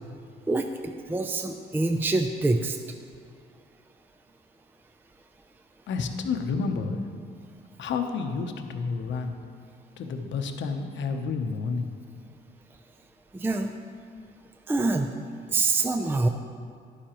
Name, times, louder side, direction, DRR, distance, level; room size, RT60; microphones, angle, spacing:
voice 1, 0.5-2.8 13.3-13.7 14.7-15.1 15.5-16.3, right 3 dB, 10° right, 5 dB, 0.4 m, -25 dB
voice 2, 5.9-7.0 7.8-9.4 10.0-11.9, left 4 dB, 70° left, 6 dB, 0.8 m, -30 dB
11.5 x 9.8 x 3.0 m, 2.3 s
cardioid pair, 90°, 20 cm